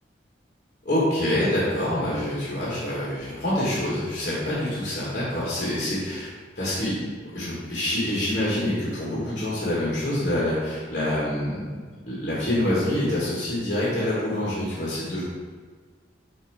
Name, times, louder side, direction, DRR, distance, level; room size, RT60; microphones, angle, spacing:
voice 1, 0.8-6.3 6.5-7.0 7.3-11.6 12.0-15.2, left 1 dB, 50° left, -8 dB, 1.5 m, -26 dB
7.9 x 2.7 x 4.8 m, 1.5 s
head